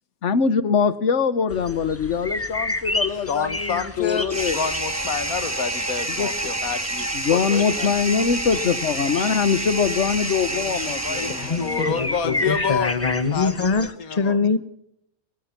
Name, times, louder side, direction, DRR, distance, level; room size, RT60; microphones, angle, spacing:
voice 1, 0.2-4.6 6.2-6.3 7.1-12.4, left 6 dB, 60° left, 14 dB, 1.5 m, -23 dB
sound 1, 1.5-13.9, left 1 dB, 10° left, 1.3 m, -33 dB
voice 2, 3.1-7.9 10.5-12.9 13.3-13.7 14.0-14.6, left 6 dB, 90° left, 12 dB, 1.8 m, -29 dB
sound 2, 4.3-12.0, right 2 dB, 10° right, 1.4 m, -28 dB
voice 3, 11.3-14.6, left 4 dB, 30° left, 12 dB, 1.4 m, -24 dB
22.5 x 20.0 x 6.0 m, 0.77 s
omnidirectional pair, 1.5 m